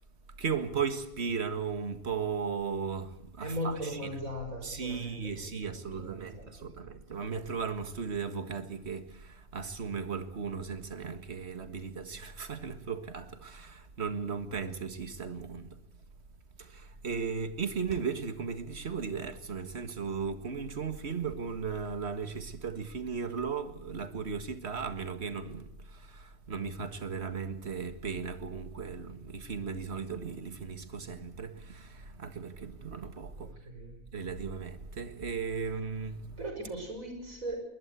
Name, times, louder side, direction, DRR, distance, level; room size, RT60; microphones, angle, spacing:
voice 1, 0.4-4.3 4.6-15.8 16.6-33.5 34.1-36.5, right 5 dB, 45° right, 2.0 m, -36 dB
voice 2, 3.4-6.9 33.4-34.0 36.4-37.6, equal, 60° right, 6.5 m, -39 dB
21.5 x 20.0 x 8.3 m
omnidirectional pair, 1.6 m